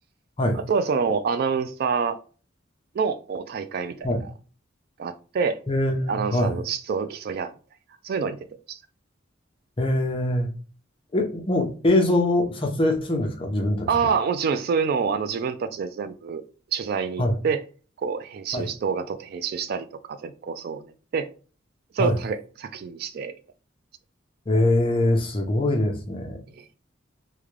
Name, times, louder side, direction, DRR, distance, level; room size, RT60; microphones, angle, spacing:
voice 1, 0.5-2.2 2.9-4.1 5.0-5.6 6.1-7.5 8.0-8.4 8.7-8.8 13.9-16.4 16.7-17.6 18.0-20.8 21.1-21.3 21.9-23.3 26.6-26.7, right 5 dB, 55° right, 0.3 m, -27 dB
voice 2, 5.7-6.5 9.8-10.5 11.1-13.9 17.2-17.4 18.5-18.7 22.0-22.1 24.5-26.4, left 1 dB, 30° left, 0.6 m, -23 dB
3.6 x 2.2 x 3.1 m
head